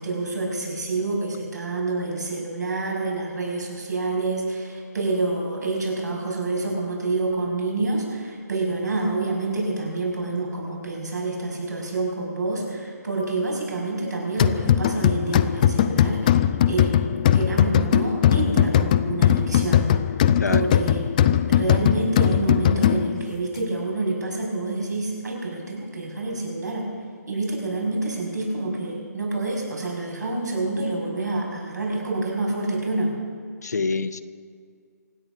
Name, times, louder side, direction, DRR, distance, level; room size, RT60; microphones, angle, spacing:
voice 1, 0.0-16.3 16.7-19.9 20.5-26.9 27.3-33.1, right 2 dB, 75° right, 0 dB, 5.8 m, -27 dB
sound 1, 14.4-23.3, left 10 dB, 25° left, 0.5 m, -20 dB
voice 2, 33.6-34.2, left 4 dB, 70° left, 11 dB, 0.9 m, -26 dB
25.0 x 9.3 x 6.1 m, 2.1 s
figure-of-eight pair, 150°, 9 cm